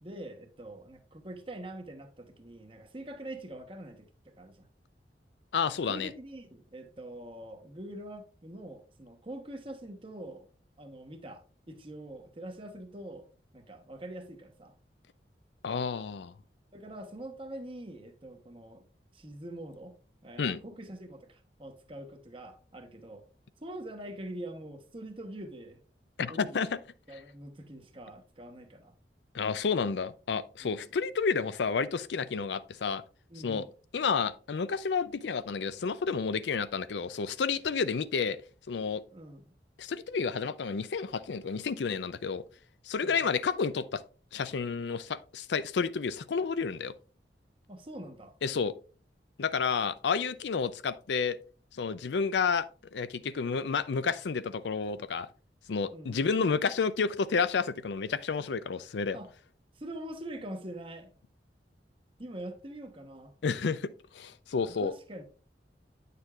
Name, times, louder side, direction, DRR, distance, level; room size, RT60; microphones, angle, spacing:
voice 1, 0.0-4.1 4.4-4.7 5.9-10.5 10.8-13.3 13.5-14.7 16.7-18.8 19.1-23.2 23.6-25.8 26.3-26.7 27.1-28.9 30.6-30.9 33.3-33.7 39.1-39.5 43.0-43.4 47.7-48.3 55.9-56.2 59.1-59.3 59.8-61.1 62.2-63.3 64.7-65.2, right 1 dB, 30° right, 1.0 m, -44 dB
voice 2, 5.5-6.1 15.6-16.3 20.4-20.6 26.2-26.8 29.3-33.0 33.4-33.6 33.9-38.4 38.7-39.0 39.8-42.4 42.9-44.0 44.3-46.9 48.4-48.7 49.4-51.4 51.7-52.7 52.9-55.3 55.7-59.2 63.4-64.9, left 5 dB, 80° left, 0.5 m, -30 dB
9.5 x 6.7 x 2.4 m
head